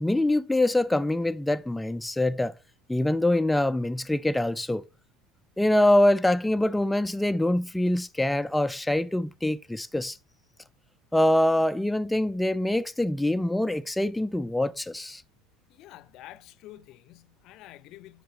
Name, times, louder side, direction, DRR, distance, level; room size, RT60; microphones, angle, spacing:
voice 1, 0.0-2.5 2.9-4.8 5.6-10.2 11.1-15.2, left 1 dB, 5° left, 0.3 m, -24 dB
voice 2, 15.7-18.2, left 15 dB, 50° left, 0.6 m, -48 dB
10.0 x 7.2 x 2.8 m
figure-of-eight pair, 70°, 0 cm